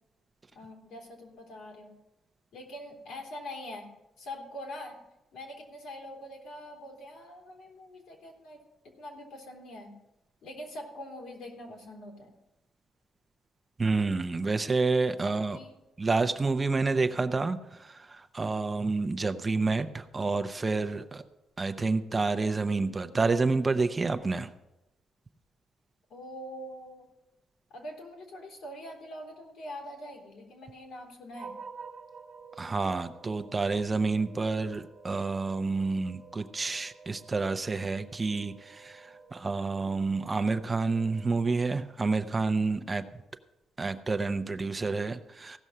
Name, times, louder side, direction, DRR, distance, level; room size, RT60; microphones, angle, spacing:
voice 1, 0.5-1.9 2.5-3.9 4.2-5.0 5.3-9.9 10.4-12.3 15.2-15.7 26.1-27.1 27.7-31.6, left 1 dB, 80° left, 0 dB, 3.1 m, -44 dB
voice 2, 13.8-15.6 16.0-21.2 21.6-24.5 32.6-43.0 43.8-45.6, right 3 dB, 25° right, 9 dB, 0.6 m, -29 dB
sound 1, 31.3-41.9, right 5 dB, 50° right, 1.3 m, -51 dB
16.0 x 6.2 x 5.5 m, 0.96 s
cardioid pair, 115°, 0 cm